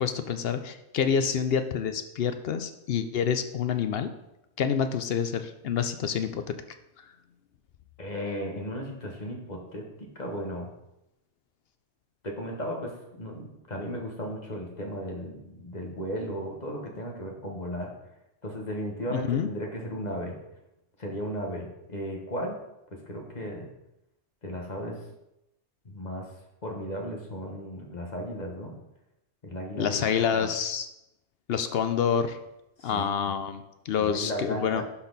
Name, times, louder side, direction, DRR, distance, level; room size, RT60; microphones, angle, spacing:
voice 1, 0.0-4.1 4.6-6.6 19.1-19.5 29.8-30.9 31.5-32.4 32.8-34.8, left 7 dB, 65° left, 9 dB, 0.8 m, -27 dB
voice 2, 8.0-10.7 12.2-17.9 18.4-20.4 21.0-22.6 23.1-23.7 24.4-25.0 25.8-26.3 26.6-28.7 29.4-30.5 32.8-33.3 34.0-34.8, equal, 40° left, 0 dB, 1.4 m, -35 dB
11.5 x 4.3 x 4.0 m, 0.87 s
omnidirectional pair, 1.2 m